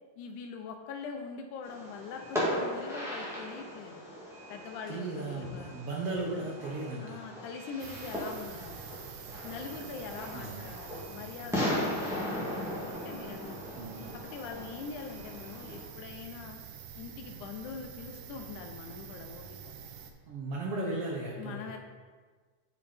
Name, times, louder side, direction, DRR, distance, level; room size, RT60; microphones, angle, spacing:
voice 1, 0.2-4.0 4.5-5.7 7.0-8.9 9.4-12.5 12.8-13.6 14.1-16.6 17.0-19.7 21.4-21.8, left 5 dB, 85° left, 4 dB, 2.2 m, -43 dB
Fireworks, 1.6-15.8, equal, ahead, 1.4 m, -38 dB
voice 2, 4.9-7.2 10.3-10.7 13.8-14.2 20.3-21.8, right 2 dB, 65° right, -2 dB, 1.6 m, -36 dB
sound 1, 7.8-20.1, right 7 dB, 85° right, 2.3 m, -47 dB
8.9 x 5.3 x 4.3 m, 1.5 s
omnidirectional pair, 3.5 m